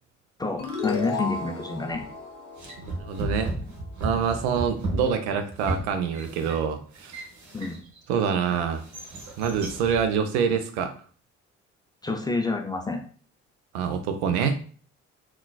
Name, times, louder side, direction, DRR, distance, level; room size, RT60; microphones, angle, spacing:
voice 1, 0.4-2.0 7.5-7.8 12.0-13.0, left 3 dB, 10° left, 3 dB, 0.4 m, -28 dB
sound 1, 0.6-3.8, left 4 dB, 65° left, 0.8 m, -34 dB
sound 2, 1.9-2.1 2.6-8.0 8.5-10.0, right 2 dB, 50° right, 1.0 m, -34 dB
voice 2, 2.8-3.5 4.0-7.2 8.1-8.8 9.4-10.9 13.7-14.5, right 7 dB, 70° right, 8 dB, 0.5 m, -26 dB
3.7 x 2.2 x 2.3 m, 0.42 s
figure-of-eight pair, 50°, 36 cm